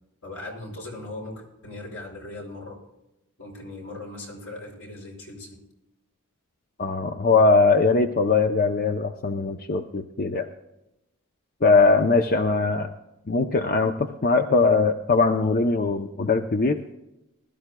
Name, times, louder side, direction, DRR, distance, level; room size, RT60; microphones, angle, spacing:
voice 1, 0.2-2.8 3.4-5.6, left 2 dB, 80° left, 0 dB, 5.3 m, -39 dB
voice 2, 6.8-10.5 11.6-12.9 13.3-16.8, left 3 dB, 45° left, 6 dB, 0.6 m, -21 dB
21.0 x 12.5 x 2.3 m, 0.91 s
head